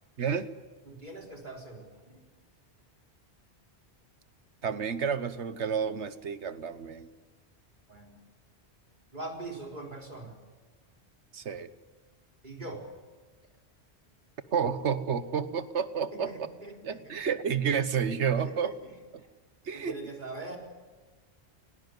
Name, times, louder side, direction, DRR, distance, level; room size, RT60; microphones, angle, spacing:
voice 1, 0.2-0.5 4.6-7.1 11.3-11.7 14.5-16.3 16.8-18.7 19.1-19.2 19.6-20.0, right 7 dB, 85° right, 13 dB, 1.4 m, -30 dB
voice 2, 0.9-2.2 7.9-8.2 9.1-10.4 12.4-12.8 16.1-17.1 18.4-19.3 19.7-20.6, right 2 dB, 45° right, 1 dB, 4.1 m, -42 dB
19.0 x 18.5 x 9.4 m, 1.4 s
omnidirectional pair, 1.1 m